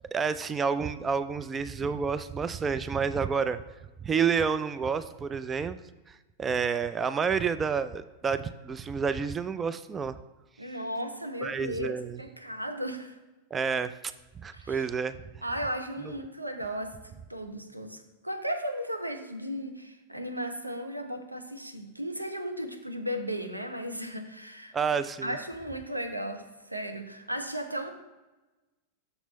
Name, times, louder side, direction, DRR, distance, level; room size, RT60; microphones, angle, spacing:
voice 1, 0.1-3.6 4.0-5.8 6.4-10.2 11.4-12.2 13.5-13.9 14.4-15.2 24.7-25.4, right 6 dB, 20° right, 13 dB, 0.3 m, -29 dB
voice 2, 10.6-13.2 14.5-14.9 15.4-24.7 25.2-27.9, equal, 85° right, 5 dB, 0.9 m, -35 dB
6.7 x 6.0 x 4.1 m, 1.1 s
figure-of-eight pair, 90°, 0 cm